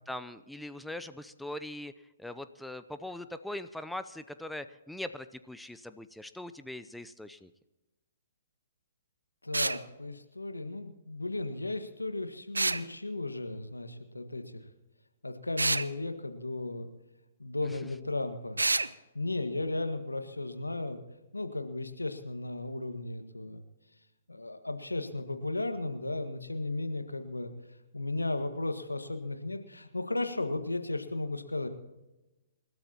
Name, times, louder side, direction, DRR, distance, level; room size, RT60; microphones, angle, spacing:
voice 1, 0.1-1.9 2.2-7.5, left 1 dB, ahead, 11 dB, 0.6 m, -41 dB
voice 2, 9.4-14.6 15.2-16.9 17.4-18.6 19.2-21.0 21.3-23.6 24.3-27.5 27.9-31.7, left 2 dB, 90° left, 7 dB, 1.6 m, -35 dB
sound 1, 9.5-9.8 12.5-12.8 15.6-15.9 18.6-18.9, right 3 dB, 85° right, 0.6 m, -27 dB
27.5 x 13.0 x 2.9 m, 1.0 s
figure-of-eight pair, 125°, 0 cm